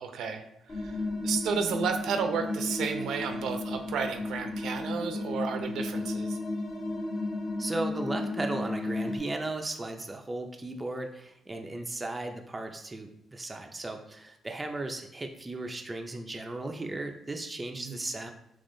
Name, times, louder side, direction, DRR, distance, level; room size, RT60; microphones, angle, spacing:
voice 1, 0.0-6.4 17.8-18.0, right 6 dB, 80° right, 6 dB, 0.5 m, -32 dB
sound 1, 0.7-9.2, left 2 dB, 40° left, 1.0 m, -33 dB
voice 2, 7.6-18.3, right 2 dB, 15° right, 3 dB, 0.4 m, -36 dB
5.2 x 3.4 x 2.6 m, 0.79 s
cardioid pair, 125°, 0 cm